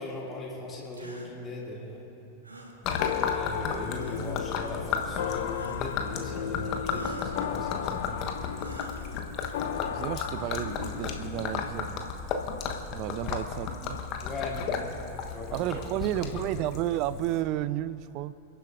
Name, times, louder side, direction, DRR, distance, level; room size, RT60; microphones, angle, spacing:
voice 1, 0.0-2.0 3.3-8.3 13.2-13.3 14.2-14.9 15.3-16.6, left 2 dB, 20° left, -4 dB, 2.4 m, -39 dB
sound 1, 0.9-1.3 2.4-2.8 3.9-4.4 5.5-6.0 6.8-7.4 8.6-9.2, right 1 dB, 80° right, 1.5 m, -45 dB
Gurgling / Liquid, 2.8-17.4, left 6 dB, 40° left, 1.1 m, -34 dB
sound 2, 3.0-11.7, left 9 dB, 55° left, 0.6 m, -35 dB
voice 2, 9.7-12.0 12.9-14.0 15.5-18.5, right 13 dB, 40° right, 17 dB, 0.4 m, -32 dB
29.0 x 11.0 x 2.6 m, 2.9 s
figure-of-eight pair, 90°, 0 cm